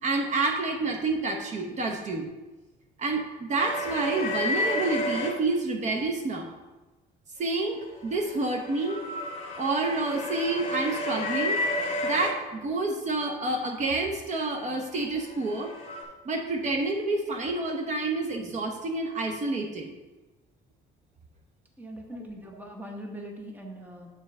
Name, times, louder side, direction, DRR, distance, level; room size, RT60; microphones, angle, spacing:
voice 1, 0.0-2.3 3.0-6.5 7.4-9.0 9.6-11.6 12.0-15.7 16.2-19.9, right 3 dB, 45° right, 2 dB, 0.9 m, -28 dB
sound 1, 3.6-5.3 7.7-12.3 14.7-16.0, left 1 dB, 40° left, 2.0 m, -31 dB
voice 2, 21.8-24.1, equal, 10° right, 1 dB, 1.1 m, -41 dB
7.2 x 3.9 x 5.3 m, 1.1 s
cardioid pair, 110°, 17 cm